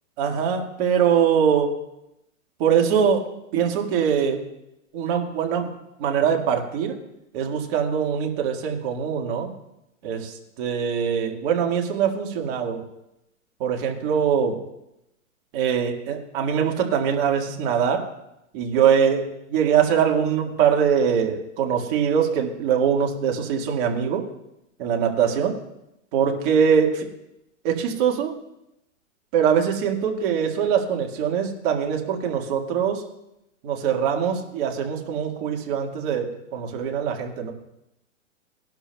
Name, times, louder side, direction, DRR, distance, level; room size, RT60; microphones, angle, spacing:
voice 1, 0.2-1.7 2.6-3.2 3.5-4.4 4.9-5.7 6.0-6.9 7.3-9.5 10.0-10.3 10.6-12.8 13.6-14.5 15.5-18.0 18.5-24.2 24.8-25.5 26.1-27.1 27.6-28.3 29.3-33.0 33.6-36.3 36.5-37.5, right 7 dB, 40° right, 2 dB, 1.8 m, -22 dB
18.0 x 11.5 x 2.3 m, 0.85 s
hypercardioid pair, 145°, 39 cm